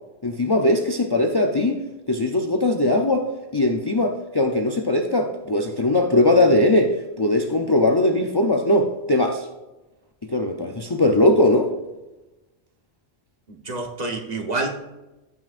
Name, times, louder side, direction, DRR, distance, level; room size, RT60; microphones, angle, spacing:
voice 1, 0.2-1.8 2.1-3.2 3.5-9.5 10.3-11.7, left 1 dB, 30° left, 2 dB, 0.6 m, -20 dB
voice 2, 13.5-14.7, right 2 dB, 40° right, 2 dB, 1.3 m, -28 dB
14.0 x 6.1 x 2.5 m, 1.0 s
omnidirectional pair, 1.1 m